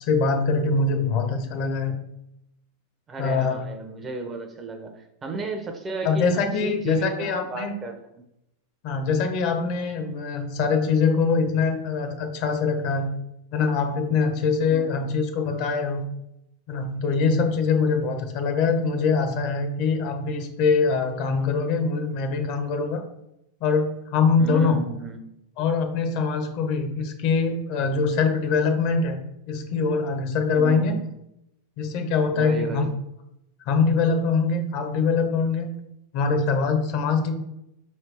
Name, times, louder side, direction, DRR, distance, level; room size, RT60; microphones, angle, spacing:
voice 1, 0.0-1.9 3.2-3.6 6.0-7.7 8.8-13.1 13.5-16.0 16.7-23.0 23.6-24.8 25.6-29.2 29.5-31.0 31.8-32.8 33.6-35.7 36.1-37.3, left 4 dB, 50° left, 6 dB, 0.8 m, -23 dB
voice 2, 3.1-6.3 6.6-8.2 14.7-15.1 24.4-25.2 30.5-31.1 32.3-32.9, right 3 dB, 20° right, 5 dB, 0.6 m, -33 dB
4.6 x 3.2 x 3.3 m, 0.84 s
supercardioid pair, 140°, 0 cm